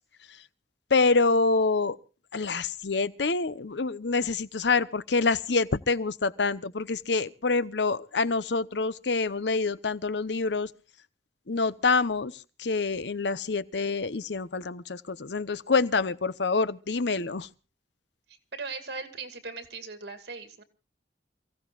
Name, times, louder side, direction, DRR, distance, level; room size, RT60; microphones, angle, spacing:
voice 1, 0.9-2.0 2.3-10.7 11.5-17.5, left 4 dB, 75° left, 0.8 m, -26 dB
voice 2, 18.5-20.6, right 4 dB, 70° right, 2.5 m, -38 dB
28.5 x 16.0 x 2.4 m
head